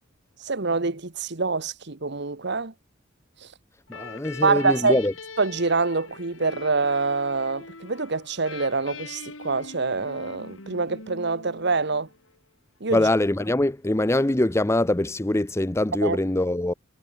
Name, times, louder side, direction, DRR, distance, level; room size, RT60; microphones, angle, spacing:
voice 1, 0.4-2.7 3.4-3.5 4.4-5.0 5.4-12.1 12.8-13.1 16.0-16.2, right 4 dB, 60° right, 1.4 m, -25 dB
sound 1, 3.9-12.4, left 4 dB, 85° left, 6.0 m, -42 dB
voice 2, 3.9-5.1 12.9-16.7, left 1 dB, 15° left, 0.6 m, -23 dB
head